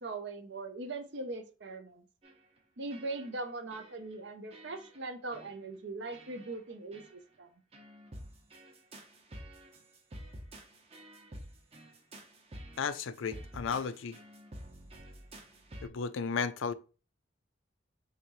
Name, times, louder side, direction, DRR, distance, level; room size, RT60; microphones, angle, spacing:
voice 1, 0.0-2.0 2.8-7.5, right 2 dB, 60° right, 0.7 m, -40 dB
sound 1, 2.2-2.6 2.9-3.5 3.7-4.2 4.5-5.0 5.3-5.6 6.1-6.6 6.9-7.1 7.7-15.9, equal, 30° right, 0.9 m, -50 dB
voice 2, 12.8-14.2 15.8-16.7, left 5 dB, 80° left, 0.4 m, -34 dB
5.8 x 2.9 x 3.1 m
head